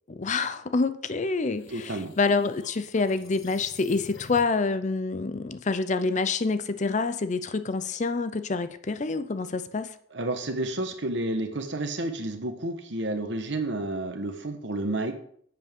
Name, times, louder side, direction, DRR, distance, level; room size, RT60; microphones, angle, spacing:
voice 1, 0.1-10.0, left 4 dB, 40° left, 0.5 m, -27 dB
sound 1, 1.2-4.7, left 4 dB, 70° left, 1.0 m, -49 dB
voice 2, 1.7-2.1 10.1-15.1, right 2 dB, 65° right, 1.2 m, -30 dB
10.5 x 7.7 x 3.6 m
head